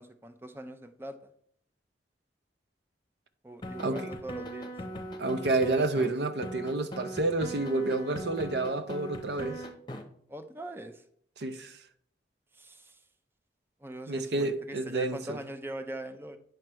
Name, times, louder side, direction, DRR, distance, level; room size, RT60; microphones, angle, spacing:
voice 1, 0.0-1.3 3.4-4.7 10.3-11.0 12.5-13.0 13.8-16.4, right 1 dB, 15° right, 0.5 m, -42 dB
sound 1, 3.6-6.1 6.4-10.0, equal, 25° left, 0.9 m, -39 dB
voice 2, 3.8-4.1 5.2-9.6 11.4-11.8 14.1-15.4, right 2 dB, 75° right, 0.7 m, -29 dB
9.0 x 3.3 x 6.1 m
head